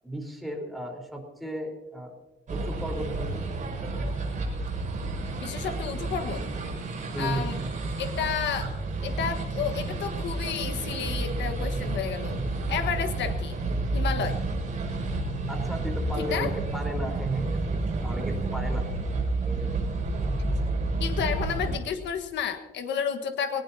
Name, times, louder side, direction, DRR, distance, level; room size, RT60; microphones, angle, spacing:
voice 1, 0.0-2.1 2.5-3.4 7.1-7.5 15.5-18.8 19.4-19.8, right 1 dB, ahead, 3 dB, 4.2 m, -35 dB
sound 1, 2.5-21.8, right 2 dB, 45° right, 6.2 m, -30 dB
voice 2, 5.4-6.4 7.2-7.6 8.0-8.7 9.0-12.4 12.7-13.6 13.9-14.4 16.2-16.5 21.0-23.6, left 7 dB, 80° left, 7 dB, 1.5 m, -31 dB
23.0 x 19.0 x 2.8 m, 1.1 s
cardioid pair, 130°, 18 cm